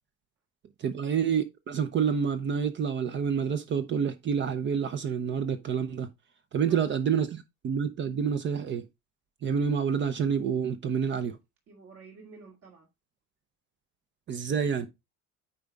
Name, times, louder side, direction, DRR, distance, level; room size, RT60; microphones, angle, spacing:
voice 1, 0.8-6.1 6.5-8.8 9.4-11.4 14.3-14.9, right 7 dB, 40° right, 0.8 m, -28 dB
voice 2, 11.7-12.9 14.5-14.9, right 4 dB, 55° right, 2.1 m, -51 dB
9.2 x 4.1 x 3.5 m
cardioid pair, 150°, 30 cm